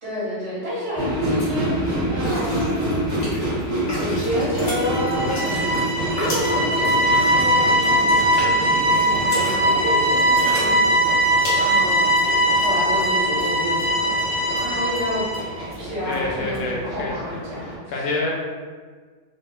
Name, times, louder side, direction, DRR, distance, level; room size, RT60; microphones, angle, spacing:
voice 1, 0.0-3.5 3.9-5.4 6.0-15.2 15.8-17.7 18.0-18.1, equal, 65° right, -8 dB, 1.9 m, -30 dB
sound 1, 0.7-0.9 1.2-1.6 2.2-12.7 13.0-13.1 13.4-13.9 14.2-14.3 14.5-14.6 14.9-15.0 15.3-15.4 15.7-15.8 16.1-16.2 16.5-16.6, left 1 dB, 85° left, 1.7 m, -35 dB
sound 2, 1.0-17.8, equal, 30° right, 0.8 m, -28 dB
sound 3, 4.7-15.5, right 1 dB, 85° right, 2.0 m, -20 dB
voice 2, 16.1-18.3, left 2 dB, 65° left, -2 dB, 0.8 m, -28 dB
5.1 x 2.2 x 2.2 m, 1.6 s
omnidirectional pair, 1.8 m